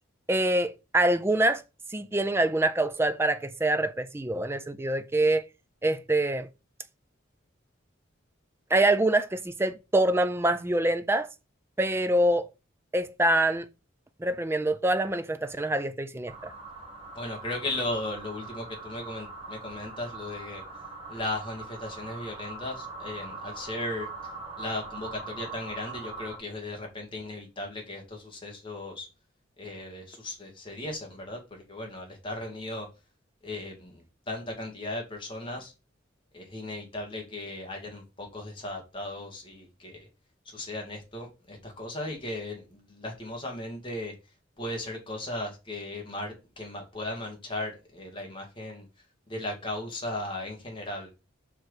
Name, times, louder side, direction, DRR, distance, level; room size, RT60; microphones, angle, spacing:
voice 1, 0.3-1.6 1.9-5.4 5.8-6.5 8.7-11.3 11.8-12.5 12.9-13.7 14.2-16.5, right 1 dB, 10° right, 0.4 m, -25 dB
sound 1, 16.3-26.4, right 3 dB, 30° right, 1.4 m, -42 dB
voice 2, 17.2-20.6 21.1-24.1 24.6-29.1 29.6-32.9 33.4-35.7 36.3-39.9 40.5-44.1 44.6-48.8 49.3-51.1, left 1 dB, 25° left, 2.1 m, -36 dB
5.7 x 4.6 x 4.9 m
head